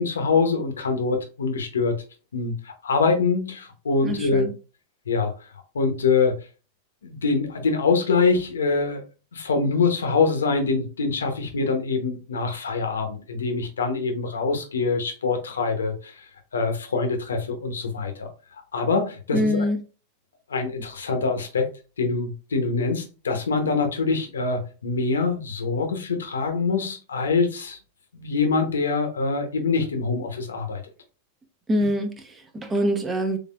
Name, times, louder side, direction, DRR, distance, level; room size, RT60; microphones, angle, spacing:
voice 1, 0.0-2.0 2.3-4.5 5.1-6.5 7.0-9.0 9.3-16.3 16.5-18.3 18.7-19.7 20.5-21.7 22.0-27.8 28.1-30.8, left 4 dB, 85° left, 0.9 m, -24 dB
voice 2, 4.0-4.5 19.3-19.8 31.7-33.4, equal, 20° right, 0.9 m, -24 dB
3.8 x 3.4 x 2.4 m
hypercardioid pair, 105°, 0 cm